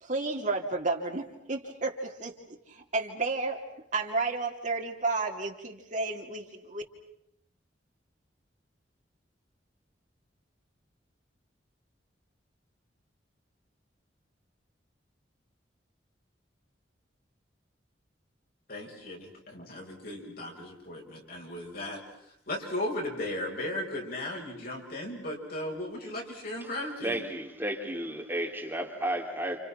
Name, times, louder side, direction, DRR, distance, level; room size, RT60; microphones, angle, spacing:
voice 1, 0.0-2.3 2.7-3.6 3.9-6.8, right 3 dB, 45° right, 2 dB, 2.9 m, -32 dB
voice 2, 18.7-22.0 22.5-27.2, left 1 dB, 55° left, -1 dB, 6.9 m, -36 dB
voice 3, 27.0-29.6, right 1 dB, 10° right, 0 dB, 3.7 m, -33 dB
29.5 x 29.5 x 6.0 m, 0.77 s
head